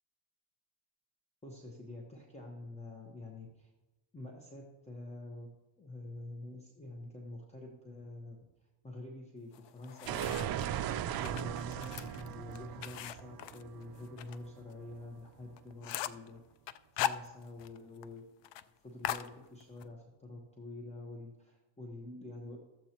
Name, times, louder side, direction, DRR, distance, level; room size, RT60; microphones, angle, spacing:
voice 1, 1.4-3.7 4.1-8.4 8.8-10.7 11.2-16.4 16.6-18.3 18.8-22.6, left 2 dB, 15° left, -1 dB, 1.1 m, -47 dB
sound 1, 9.5-10.7 11.1-14.4 14.7-14.8 15.2-15.3 15.6-16.3 16.7-17.8 18.0-18.1 18.4-18.6 19.0-19.9, left 11 dB, 65° left, 0.6 m, -39 dB
sound 2, 10.1-14.8, right 11 dB, 50° right, 0.5 m, -38 dB
13.5 x 8.1 x 3.0 m, 1.1 s
cardioid pair, 120°, 48 cm